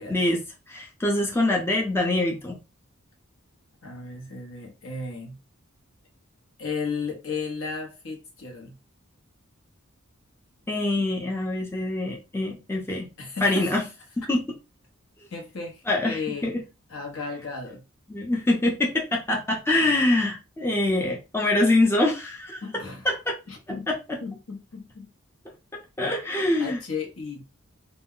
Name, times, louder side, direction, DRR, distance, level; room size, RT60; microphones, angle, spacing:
voice 1, 0.1-2.6 10.7-13.1 13.4-13.8 14.2-14.4 15.9-16.6 18.1-22.6 23.0-23.2 23.9-24.0 26.0-26.8, left 2 dB, 10° left, 0.4 m, -24 dB
voice 2, 3.8-5.4 6.6-8.8 13.2-13.7 15.3-16.5 16.9-17.8 22.6-23.1 23.5-23.9 24.2-25.1 26.6-27.4, left 4 dB, 80° left, 0.9 m, -34 dB
2.2 x 2.1 x 3.5 m
head